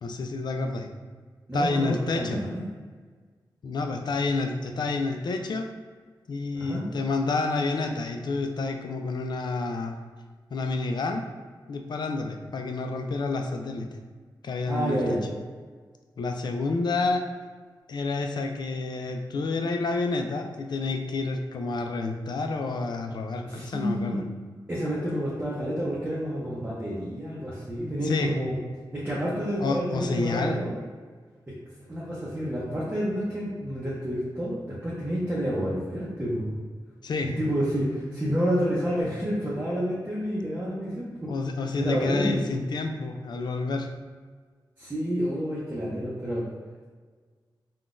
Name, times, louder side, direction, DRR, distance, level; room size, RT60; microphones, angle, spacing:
voice 1, 0.0-0.9 1.5-2.4 3.6-5.7 6.3-10.0 10.5-11.2 11.7-13.9 14.4-15.2 16.2-17.2 17.9-24.2 28.0-28.3 29.6-30.6 37.0-37.3 41.3-43.9, left 3 dB, 65° left, 4 dB, 0.3 m, -29 dB
voice 2, 1.5-2.6 6.5-6.8 14.7-15.2 23.4-24.2 24.7-28.6 28.9-30.7 31.5-31.6 31.9-36.6 37.2-41.3 41.8-42.4 44.8-46.5, equal, 20° right, -7 dB, 0.7 m, -29 dB
3.7 x 2.3 x 2.4 m, 1.5 s
wide cardioid pair, 90°, 8 cm